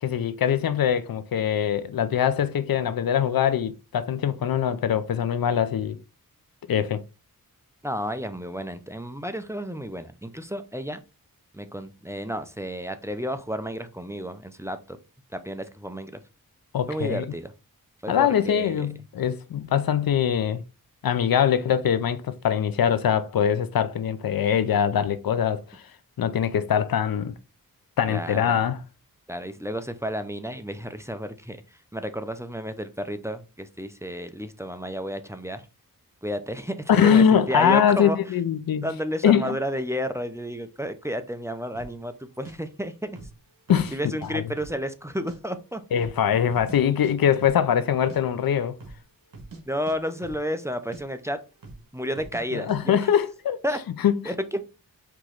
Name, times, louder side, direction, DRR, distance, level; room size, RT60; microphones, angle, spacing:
voice 1, 0.0-6.0 6.7-7.0 16.7-17.2 18.1-20.6 21.0-25.8 26.2-27.3 28.0-28.8 36.9-38.9 39.2-39.6 43.7-43.9 44.3-44.4 45.9-48.8 52.5-53.6 54.0-54.1, left 8 dB, 75° left, 0.5 m, -22 dB
voice 2, 7.8-11.0 11.5-15.0 15.3-16.2 16.9-17.5 18.0-18.9 28.1-28.6 29.3-35.7 36.2-38.2 38.8-43.2 43.9-45.8 49.7-51.4 51.9-53.1 53.6-53.8 54.2-54.6, equal, 10° right, 0.5 m, -31 dB
sound 1, 41.7-42.0 42.4-42.5 43.1-43.4 43.7-44.3 44.6-45.4 45.6-45.7 46.0-46.8 47.0-47.1 47.4-47.6 47.9-48.2 48.7-49.0 49.3-49.6 49.9-50.7 50.9-51.0 51.6-51.9 52.2-52.4 52.7-52.8, right 3 dB, 65° right, 1.3 m, -43 dB
4.5 x 3.1 x 3.8 m
wide cardioid pair, 75°, 36 cm